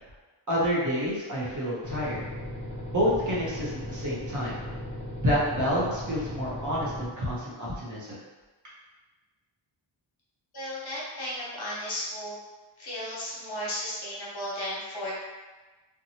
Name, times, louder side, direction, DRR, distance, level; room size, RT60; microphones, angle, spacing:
voice 1, 0.5-2.2 2.9-4.6 5.2-8.2, equal, 40° right, -7 dB, 0.8 m, -28 dB
sound 1, 1.8-7.1, left 1 dB, 15° left, 0.4 m, -37 dB
voice 2, 10.5-12.4 12.8-15.1, left 1 dB, 55° left, -6 dB, 1.0 m, -34 dB
2.9 x 2.2 x 2.7 m, 1.2 s
wide cardioid pair, 145°, 46 cm